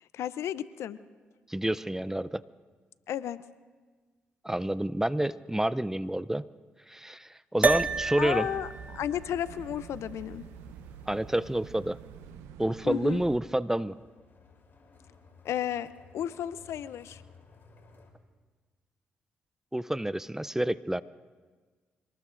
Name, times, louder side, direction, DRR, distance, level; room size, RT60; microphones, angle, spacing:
voice 1, 0.1-1.0 3.1-3.4 8.2-10.5 12.9-13.2 15.4-17.2, left 10 dB, 75° left, 16 dB, 0.5 m, -33 dB
voice 2, 1.5-2.4 4.4-6.5 6.9-8.5 11.1-12.0 12.6-14.0 19.7-21.0, right 1 dB, 10° right, 17 dB, 0.5 m, -29 dB
sound 1, 7.6-12.2, right 4 dB, 30° right, 0.8 m, -32 dB
sound 2, 7.7-13.4, right 8 dB, 85° right, 0.6 m, -48 dB
sound 3, 9.5-18.1, left 4 dB, 50° left, 3.4 m, -59 dB
25.5 x 19.5 x 2.6 m, 1.4 s
hypercardioid pair, 45°, 5 cm